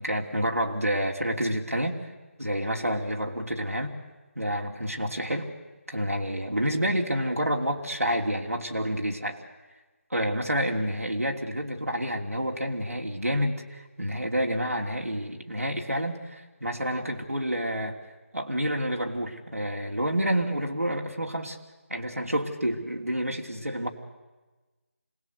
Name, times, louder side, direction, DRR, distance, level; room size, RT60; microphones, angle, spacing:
voice 1, 0.0-2.0 2.4-3.9 4.3-5.5 5.9-9.4 10.1-18.0 18.3-21.6 21.9-23.9, equal, 85° right, 1 dB, 3.1 m, -29 dB
26.5 x 19.0 x 8.2 m, 1.2 s
figure-of-eight pair, 160°, 8 cm